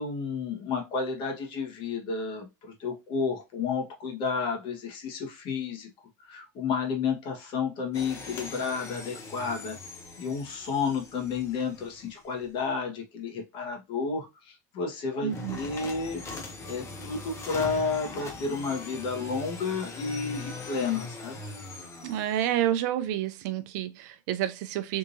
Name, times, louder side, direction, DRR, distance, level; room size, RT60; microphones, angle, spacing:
voice 1, 0.0-5.9 6.2-9.8 10.2-16.2 16.6-21.4, left 5 dB, 60° left, 1.4 m, -31 dB
sound 1, 7.9-12.4 15.3-22.6, left 3 dB, 30° left, 0.9 m, -41 dB
voice 2, 15.2-15.6 22.0-25.0, right 11 dB, 80° right, 0.5 m, -29 dB
3.6 x 2.7 x 2.7 m
supercardioid pair, 95°, 9 cm